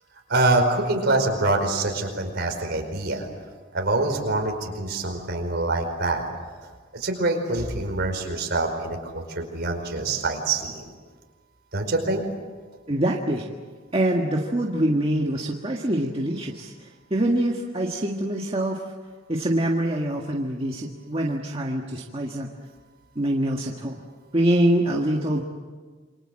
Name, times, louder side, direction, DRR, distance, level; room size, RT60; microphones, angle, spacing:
voice 1, 0.3-3.3 3.7-6.2 6.6-10.8 11.7-12.2, right 2 dB, 55° right, 4 dB, 4.9 m, -25 dB
voice 2, 12.9-13.5 13.9-18.8 19.3-22.5 23.2-24.0 24.3-25.4, right 1 dB, 30° right, -1 dB, 1.7 m, -24 dB
28.0 x 24.0 x 7.7 m, 1.5 s
head